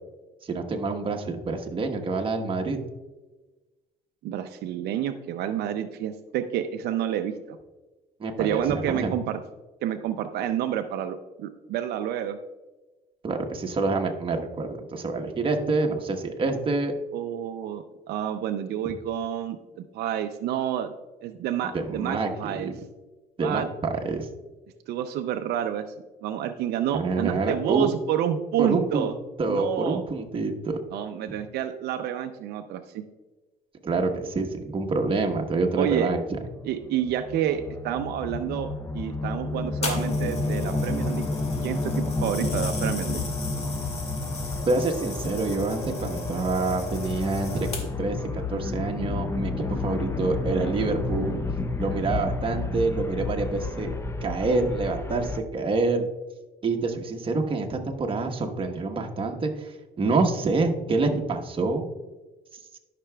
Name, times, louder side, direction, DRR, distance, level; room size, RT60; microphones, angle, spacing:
voice 1, 0.4-2.8 8.2-9.1 13.2-16.9 21.7-22.6 23.4-24.3 26.9-27.9 28.6-29.1 29.4-30.8 33.8-36.4 44.7-51.4 51.8-53.9 54.2-56.1 56.6-61.9, right 3 dB, 30° right, 3 dB, 1.1 m, -27 dB
voice 2, 4.2-7.6 8.4-9.4 9.8-12.4 17.1-20.9 21.2-22.7 23.4-23.7 24.9-25.9 26.2-29.1 29.5-30.0 30.9-33.0 35.8-36.1 36.6-38.7 38.9-41.2 41.6-43.2, right 10 dB, 75° right, 7 dB, 0.5 m, -29 dB
sound 1, 36.3-55.4, left 3 dB, 15° left, 0.6 m, -31 dB
sound 2, 39.8-48.1 48.9-49.1, left 2 dB, 40° left, 1.7 m, -35 dB
13.0 x 5.9 x 2.3 m, 1.2 s
cardioid pair, 110°, 17 cm